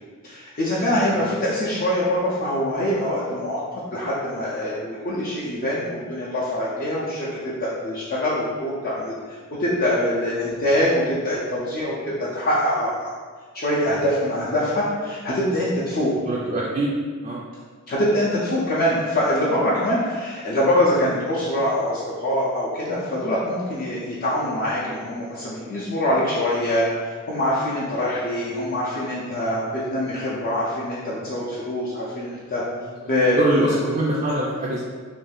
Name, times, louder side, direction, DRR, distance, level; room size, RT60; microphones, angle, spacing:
voice 1, 0.2-13.1 13.5-16.1 17.9-32.6 33.1-33.7, left 1 dB, 40° left, -7 dB, 0.5 m, -24 dB
voice 2, 15.9-16.9 17.2-17.4 29.5-29.6 33.4-34.8, right 1 dB, 30° right, -4 dB, 0.3 m, -24 dB
2.5 x 2.3 x 3.4 m, 1.5 s
head